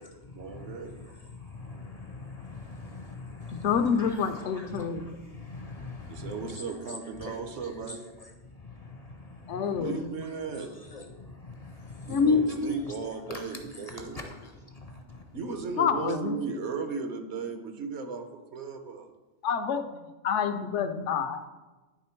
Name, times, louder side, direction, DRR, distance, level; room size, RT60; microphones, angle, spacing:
voice 1, 0.3-0.9 6.1-8.0 9.8-10.7 12.1-14.2 15.3-19.1, right 5 dB, 70° right, 6 dB, 1.0 m, -36 dB
voice 2, 1.4-3.7 4.0-4.1 4.5-4.9 5.4-6.3 7.3-7.4 8.9-9.6 10.9-11.0 11.4-12.1 13.3-13.4 14.0-14.3 14.8-15.2, left 3 dB, 45° left, 4 dB, 0.5 m, -42 dB
voice 3, 3.5-5.0 9.5-10.1 12.1-12.4 15.8-16.4 19.4-19.9 20.2-21.4, left 6 dB, 80° left, 9 dB, 0.9 m, -27 dB
10.0 x 3.4 x 4.4 m, 1.2 s
omnidirectional pair, 1.2 m